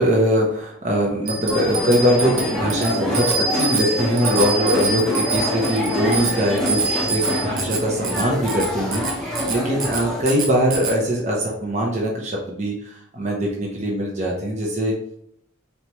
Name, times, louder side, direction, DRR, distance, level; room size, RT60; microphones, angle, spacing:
voice 1, 0.0-14.9, equal, 30° right, -3 dB, 0.7 m, -22 dB
Bicycle bell, 1.3-11.0, right 3 dB, 65° right, 0.9 m, -26 dB
sound 1, 1.5-10.2, left 1 dB, 5° left, 0.7 m, -26 dB
4.3 x 3.3 x 2.9 m, 0.75 s
head